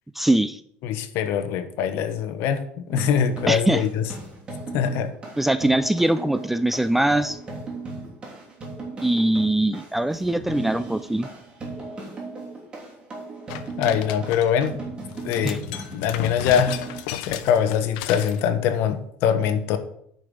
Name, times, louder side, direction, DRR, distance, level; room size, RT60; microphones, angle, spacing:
voice 1, 0.2-0.6 3.5-3.8 5.4-7.4 9.0-11.3 15.4-15.6, right 1 dB, 5° right, 13 dB, 0.3 m, -22 dB
voice 2, 0.8-4.1 4.7-5.1 13.8-14.8 15.2-16.8 17.3-19.8, left 8 dB, 60° left, 9 dB, 1.2 m, -23 dB
sound 1, 2.9-17.0, right 3 dB, 20° right, 3.1 m, -37 dB
sound 2, 13.5-14.7 15.1-18.4, left 11 dB, 90° left, 0.8 m, -34 dB
9.2 x 5.3 x 6.4 m, 0.67 s
cardioid pair, 160°, 5 cm